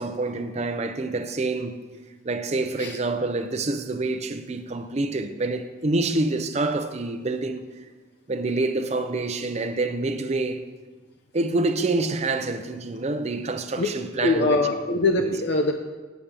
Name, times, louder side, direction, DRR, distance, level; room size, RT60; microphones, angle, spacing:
voice 1, 0.0-1.8 2.2-7.7 8.3-10.7 11.3-14.6 15.2-15.3, right 2 dB, 40° right, 0.6 m, -27 dB
voice 2, 14.2-15.7, left 2 dB, 70° left, 0.6 m, -22 dB
8.2 x 5.3 x 7.3 m
head